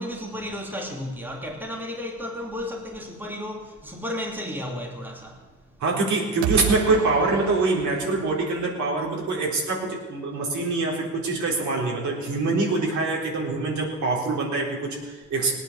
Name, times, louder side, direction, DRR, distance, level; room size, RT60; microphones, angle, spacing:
voice 1, 0.0-5.5 11.6-11.9 13.5-13.8, left 1 dB, 5° right, 2.8 m, -33 dB
voice 2, 5.8-15.5, right 3 dB, 70° right, 3.9 m, -24 dB
sound 1, 6.4-9.3, right 15 dB, 85° right, 0.5 m, -32 dB
18.0 x 9.1 x 7.1 m
cardioid pair, 90°, 30 cm